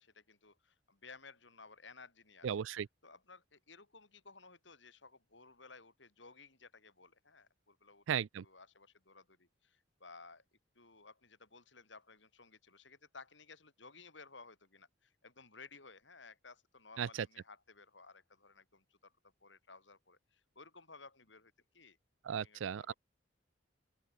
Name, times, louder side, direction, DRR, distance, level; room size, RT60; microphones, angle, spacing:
voice 1, 0.0-2.6 3.0-10.4 10.8-19.1 19.4-22.0 22.3-22.9, left 4 dB, 70° left, 7.4 m, -57 dB
voice 2, 2.4-2.9 8.1-8.4 17.0-17.1 22.3-22.9, right 8 dB, 85° right, 0.4 m, -36 dB
open air
head